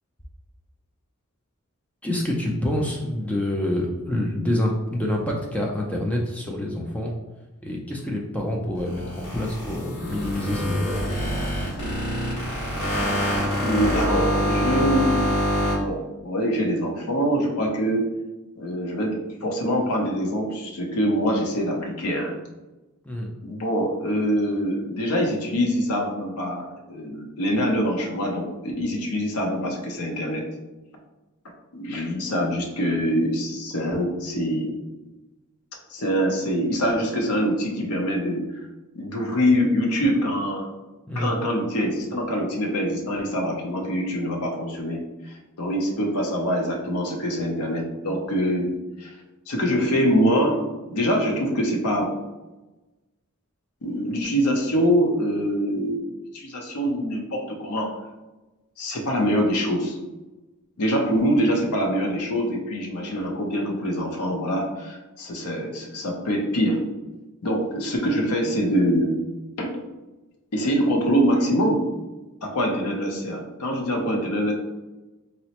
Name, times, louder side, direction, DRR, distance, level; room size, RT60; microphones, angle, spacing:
voice 1, 2.0-7.1 7.6-11.0 23.1-23.3 41.1-41.3, left 1 dB, 5° left, -1 dB, 0.3 m, -27 dB
sound 1, 8.7-15.8, equal, 70° left, 1.5 m, -25 dB
voice 2, 13.6-15.2 15.6-18.1 18.6-22.3 23.4-30.4 31.7-34.8 35.9-38.4 38.9-40.7 41.1-48.7 49.0-49.1 49.5-50.6 50.9-52.1 53.8-56.1 56.3-57.9 58.8-60.0 60.8-66.8 67.4-69.1 69.6-69.7 70.5-71.9 72.4-74.5, equal, 85° left, 1 dB, 0.6 m, -24 dB
4.1 x 2.0 x 2.8 m, 1.1 s
head